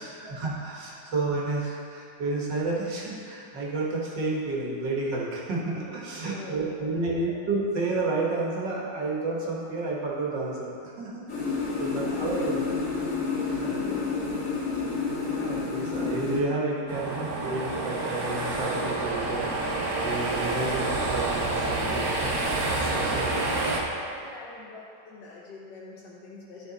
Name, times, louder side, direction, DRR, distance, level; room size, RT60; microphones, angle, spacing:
voice 1, 0.0-12.6 13.5-13.7 15.3-23.5, right 3 dB, 75° right, -4 dB, 1.9 m, -31 dB
voice 2, 6.3-7.4 11.7-12.8 13.6-14.4 23.9-26.7, left 3 dB, 75° left, -6 dB, 1.6 m, -45 dB
sound 1, 11.3-16.4, left 4 dB, 45° left, 2.1 m, -29 dB
sound 2, 16.9-23.8, right 2 dB, 60° right, 1.3 m, -28 dB
11.5 x 4.7 x 4.0 m, 2.7 s
omnidirectional pair, 2.0 m